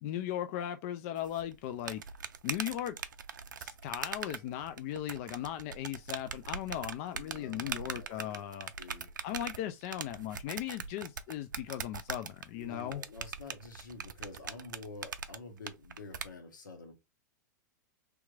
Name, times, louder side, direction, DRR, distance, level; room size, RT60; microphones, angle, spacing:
voice 1, 0.0-2.0 2.4-3.0 3.6-8.7 9.2-13.0, left 12 dB, 50° left, 0.4 m, -38 dB
sound 1, 1.2-16.3, right 7 dB, 85° right, 0.4 m, -41 dB
voice 2, 7.0-8.4 8.8-9.1 12.5-16.9, left 3 dB, 80° left, 1.1 m, -48 dB
3.4 x 3.0 x 2.4 m
hypercardioid pair, 105°, 10 cm